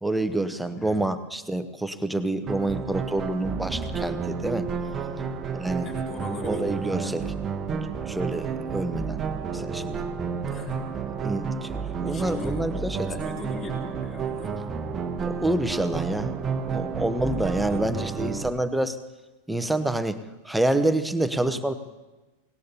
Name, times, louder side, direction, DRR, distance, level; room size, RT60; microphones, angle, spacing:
voice 1, 0.0-4.7 5.5-5.9 6.4-7.2 7.7-9.2 9.5-10.0 11.2-11.8 12.0-13.2 15.2-16.4 16.7-19.0 19.5-21.7, right 1 dB, 5° right, 11 dB, 0.9 m, -27 dB
sound 1, 2.5-18.5, right 5 dB, 25° right, 1.0 m, -31 dB
voice 2, 5.8-7.2 10.5-11.0 12.0-12.6 13.2-14.6 17.3-17.8 21.3-21.5, left 3 dB, 30° left, -1 dB, 4.7 m, -40 dB
24.5 x 19.0 x 2.9 m, 1.1 s
figure-of-eight pair, 90°, 0 cm